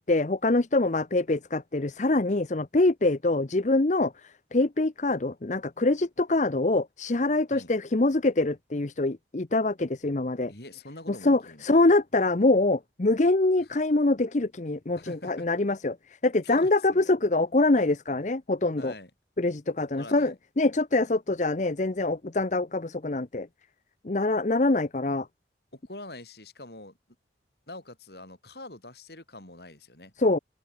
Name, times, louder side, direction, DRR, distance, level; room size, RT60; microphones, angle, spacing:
voice 1, 0.1-10.5 11.1-18.9 19.4-23.5 24.0-25.3 30.2-30.4, left 2 dB, 40° left, 0.8 m, -24 dB
voice 2, 10.5-11.6 13.6-13.7 15.0-15.5 16.4-17.1 18.8-19.1 19.9-20.3 25.7-27.0 27.7-30.1, left 2 dB, 65° left, 6.2 m, -45 dB
open air
head